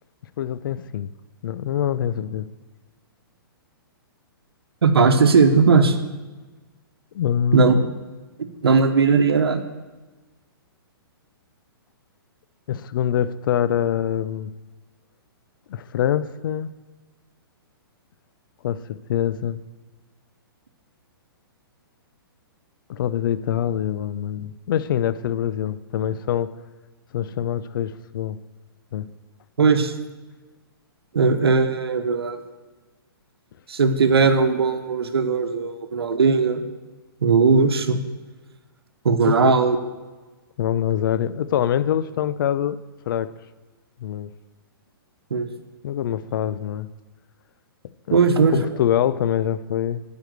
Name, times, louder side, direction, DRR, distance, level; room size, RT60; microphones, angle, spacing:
voice 1, 0.4-1.1 1.4-2.5 7.1-7.9 12.7-14.5 15.7-16.7 18.6-19.6 22.9-26.5 27.1-28.4 28.9-29.1 39.2-39.5 40.6-42.8 43.1-43.3 44.0-44.3 45.8-46.9 48.1-50.0, left 10 dB, 60° left, 15 dB, 0.5 m, -24 dB
voice 2, 4.8-6.0 7.5-7.7 8.4-9.6 29.6-29.9 31.1-32.4 33.7-36.6 37.2-38.0 39.0-39.8 45.3-45.5 48.1-48.7, right 5 dB, 85° right, 7 dB, 1.0 m, -18 dB
9.2 x 5.1 x 7.9 m, 1.2 s
hypercardioid pair, 135°, 13 cm